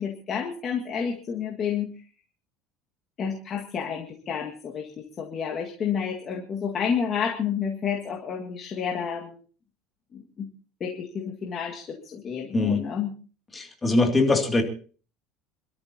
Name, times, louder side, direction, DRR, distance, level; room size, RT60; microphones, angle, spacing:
voice 1, 0.0-1.9 3.2-9.4 10.1-10.5 10.8-13.1, left 7 dB, 30° left, 0 dB, 1.9 m, -30 dB
voice 2, 12.5-12.8 13.5-14.6, left 2 dB, 15° left, 3 dB, 2.5 m, -22 dB
27.0 x 13.5 x 2.9 m, 0.40 s
cardioid pair, 160°, 0 cm